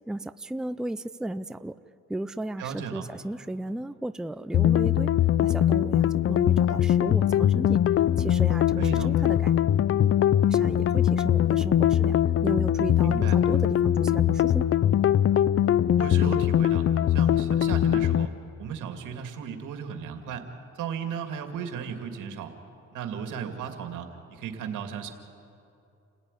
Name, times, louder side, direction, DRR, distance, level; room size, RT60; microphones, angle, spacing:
voice 1, 0.1-1.7 2.1-5.1 5.4-7.8 8.2-9.5 10.5-14.7, right 1 dB, ahead, 12 dB, 0.6 m, -34 dB
voice 2, 2.6-3.0 8.8-9.1 13.0-13.4 16.0-18.3 18.6-20.5 20.8-22.5 22.9-25.1, right 7 dB, 85° right, 5 dB, 2.5 m, -35 dB
sound 1, 4.5-18.3, left 11 dB, 50° left, 0.5 m, -22 dB
29.0 x 16.0 x 9.9 m, 2.7 s
cardioid pair, 90°, 30 cm